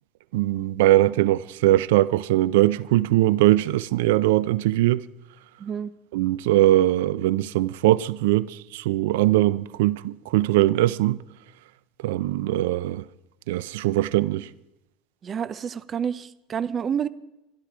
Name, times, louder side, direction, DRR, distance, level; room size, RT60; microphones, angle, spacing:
voice 1, 0.3-5.0 6.1-11.2 12.0-13.0 13.5-14.5, right 15 dB, 90° right, 0.5 m, -21 dB
voice 2, 5.6-5.9 15.2-17.1, right 7 dB, 25° right, 0.6 m, -29 dB
24.5 x 12.0 x 4.9 m
cardioid pair, 145°, 0 cm